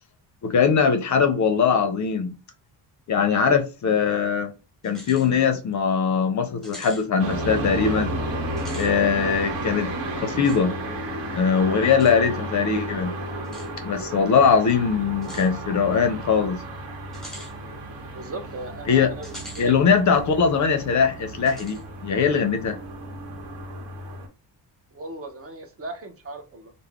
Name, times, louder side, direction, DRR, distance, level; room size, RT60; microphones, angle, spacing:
voice 1, 0.4-2.4 3.1-4.5 4.8-8.1 8.8-9.9 10.2-10.7 11.3-13.1 13.8-16.6 18.9-19.1 19.6-22.8, left 6 dB, 45° left, 0.5 m, -21 dB
sound 1, 4.8-5.3 5.7-5.8 6.6-7.0 8.5-8.9 10.4-10.6 12.0-12.1 13.4-13.7 15.2-15.5 17.1-17.5 19.2-19.7 20.1-20.2 21.5-21.8, equal, ahead, 0.7 m, -42 dB
sound 2, 7.2-24.3, right 1 dB, 80° right, 1.0 m, -33 dB
voice 2, 18.1-19.8 24.9-26.7, right 2 dB, 35° right, 0.4 m, -37 dB
2.3 x 2.0 x 3.4 m
cardioid pair, 130°, 42 cm